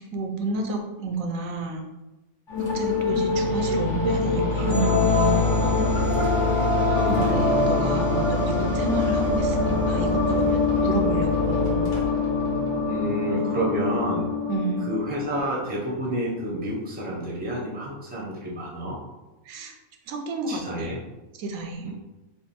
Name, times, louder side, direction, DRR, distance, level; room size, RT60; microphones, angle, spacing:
voice 1, 0.1-1.8 2.7-5.9 7.3-11.9 14.5-14.9 19.5-19.7 20.1-20.9 21.4-21.9, right 3 dB, 85° right, 3 dB, 1.0 m, -30 dB
sound 1, 2.5-15.4, left 3 dB, 65° left, 1.3 m, -23 dB
voice 2, 6.9-7.4 12.9-14.3 14.8-19.0 20.5-21.0 21.8-21.9, equal, 10° right, -3 dB, 0.6 m, -29 dB
3.5 x 2.2 x 4.1 m, 1.0 s
omnidirectional pair, 1.4 m